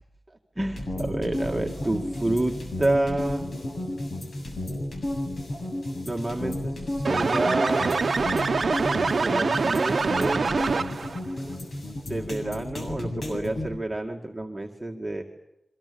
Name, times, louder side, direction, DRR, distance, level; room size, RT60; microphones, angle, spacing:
voice 1, 0.6-3.5 6.0-8.1 8.9-10.4 12.1-15.2, right 1 dB, 15° right, 0 dB, 2.2 m, -29 dB
sound 1, 0.8-13.7, left 1 dB, 65° left, 7.6 m, -32 dB
sound 2, 7.0-11.2, right 4 dB, 60° right, 0.8 m, -25 dB
28.5 x 24.5 x 7.1 m, 0.91 s
wide cardioid pair, 100°, 0 cm